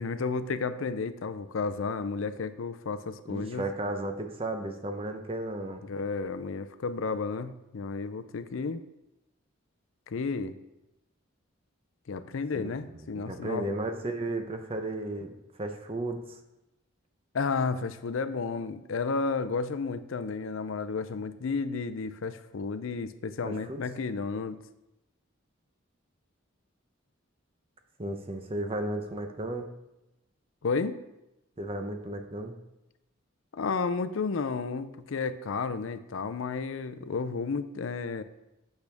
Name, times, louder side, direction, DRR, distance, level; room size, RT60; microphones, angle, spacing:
voice 1, 0.0-3.6 5.8-8.8 10.1-10.5 12.1-13.7 17.3-24.6 30.6-31.0 33.5-38.2, left 4 dB, 75° left, 12 dB, 0.5 m, -32 dB
voice 2, 3.2-5.8 12.5-12.7 13.2-16.4 23.4-23.8 28.0-29.7 31.6-32.6, right 1 dB, 25° right, 6 dB, 0.7 m, -34 dB
8.2 x 6.6 x 3.5 m, 0.92 s
head